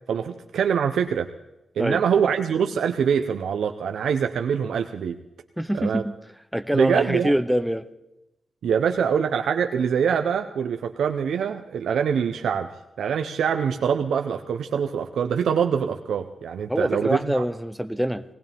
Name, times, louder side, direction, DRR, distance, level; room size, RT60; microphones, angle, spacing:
voice 1, 0.1-1.3 1.8-5.1 5.8-6.0 6.7-7.3 8.6-12.7 13.0-17.4, right 7 dB, 85° right, 5 dB, 0.9 m, -24 dB
voice 2, 5.6-6.1 6.5-7.8 16.7-18.2, equal, ahead, 11 dB, 0.7 m, -24 dB
19.5 x 19.5 x 3.6 m, 0.92 s
wide cardioid pair, 170°, 0 cm